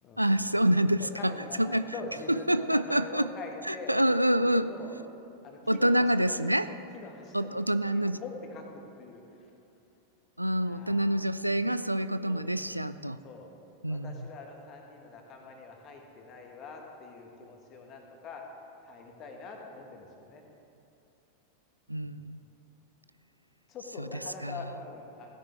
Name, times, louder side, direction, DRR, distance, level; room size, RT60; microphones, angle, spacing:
voice 1, 0.2-1.8 2.5-3.3 3.6-4.7 5.7-6.7 7.3-8.2 10.4-13.2 13.8-14.3 21.9-22.4 24.0-24.6, right 1 dB, 85° right, 13 dB, 0.3 m, -27 dB
voice 2, 1.0-4.0 4.4-5.0 5.4-9.5 10.5-11.3 12.3-12.8 13.2-13.5 13.9-18.4 18.8-20.4 21.9-22.1 23.7-25.4, left 4 dB, 35° left, 2 dB, 1.7 m, -44 dB
16.0 x 10.0 x 3.5 m, 2.8 s
figure-of-eight pair, 90°, 0 cm